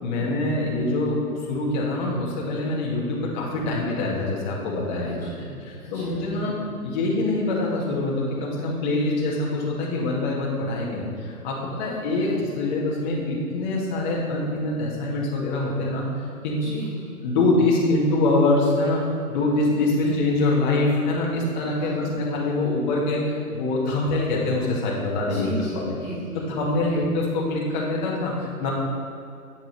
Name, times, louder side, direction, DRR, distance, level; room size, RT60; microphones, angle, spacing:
voice 1, 0.0-5.2 5.6-6.6 6.8-16.6 17.2-19.0 19.3-25.9 26.5-28.7, left 2 dB, 30° left, -4 dB, 2.0 m, -24 dB
voice 2, 5.0-5.5 5.8-6.6 11.8-12.4 16.6-17.1 20.0-20.1 21.8-22.1 25.3-26.5 26.8-27.0, right 1 dB, 5° left, -14 dB, 2.1 m, -37 dB
8.9 x 8.0 x 3.3 m, 2.5 s
hypercardioid pair, 150°, 46 cm